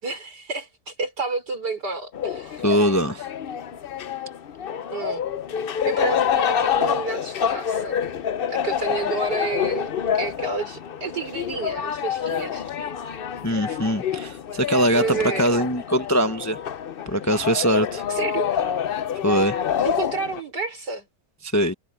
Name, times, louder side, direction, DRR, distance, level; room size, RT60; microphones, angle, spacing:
voice 1, 0.0-2.6 4.9-5.3 5.8-8.0 8.5-12.6 14.9-15.5 18.1-18.5 19.8-21.1, right 4 dB, 80° right, 5.1 m, -30 dB
sound 1, 2.1-20.4, left 8 dB, 60° left, 0.6 m, -27 dB
voice 2, 2.6-3.3 13.4-16.6 17.1-18.0 19.2-19.6 21.4-21.7, equal, 15° left, 0.8 m, -22 dB
omnidirectional pair, 1.8 m